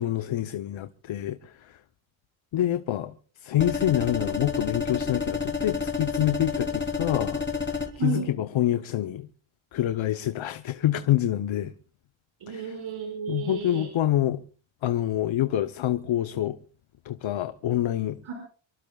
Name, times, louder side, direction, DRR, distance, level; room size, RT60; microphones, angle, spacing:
voice 1, 0.0-1.8 2.5-3.2 3.4-9.3 9.7-11.7 12.5-12.6 13.3-14.4 14.8-16.6 17.0-18.2, left 12 dB, 70° left, 0.9 m, -27 dB
sound 1, 3.6-7.9, left 5 dB, 20° left, 3.6 m, -29 dB
voice 2, 8.0-8.3 12.4-13.9 18.2-18.3, right 5 dB, 75° right, 6.1 m, -32 dB
24.5 x 24.0 x 2.4 m
cardioid pair, 105°, 49 cm